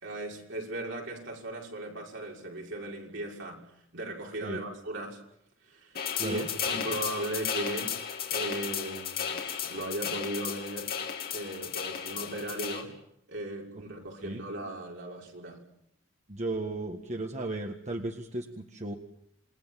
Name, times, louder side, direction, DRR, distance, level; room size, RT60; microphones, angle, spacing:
voice 1, 0.0-3.7 3.9-5.2 5.7-6.0 6.2-7.9 8.3-10.9 11.3-12.9 13.3-15.6, right 1 dB, 70° right, -1 dB, 6.0 m, -37 dB
sound 1, 5.9-12.8, left 7 dB, 50° left, 3.2 m, -34 dB
voice 2, 16.3-18.9, right 2 dB, 35° right, 4 dB, 1.7 m, -35 dB
28.0 x 21.0 x 7.5 m, 0.74 s
head